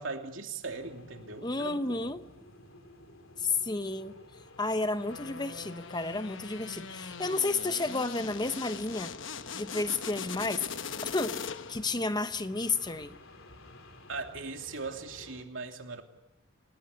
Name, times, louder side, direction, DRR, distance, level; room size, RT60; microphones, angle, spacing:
voice 1, 0.0-2.2 14.1-16.0, right 4 dB, 80° right, 4 dB, 2.9 m, -39 dB
sound 1, 0.6-15.4, left 2 dB, 90° left, 3.3 m, -52 dB
voice 2, 1.4-2.2 3.4-4.1 4.6-9.1 9.5-10.7 11.0-11.4 11.7-13.2, left 3 dB, 20° left, 11 dB, 0.9 m, -31 dB
sound 2, 5.1-11.9, left 6 dB, 70° left, 1.0 m, -41 dB
28.0 x 19.0 x 9.8 m, 0.97 s
head